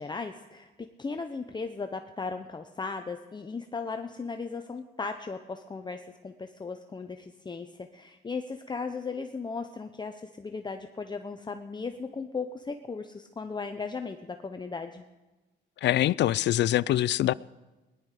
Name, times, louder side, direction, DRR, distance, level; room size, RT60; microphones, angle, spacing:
voice 1, 0.0-15.0, left 4 dB, 20° left, 0.7 m, -37 dB
voice 2, 15.8-17.3, left 13 dB, 65° left, 0.4 m, -24 dB
20.0 x 11.0 x 5.0 m
cardioid pair, 90°, 20 cm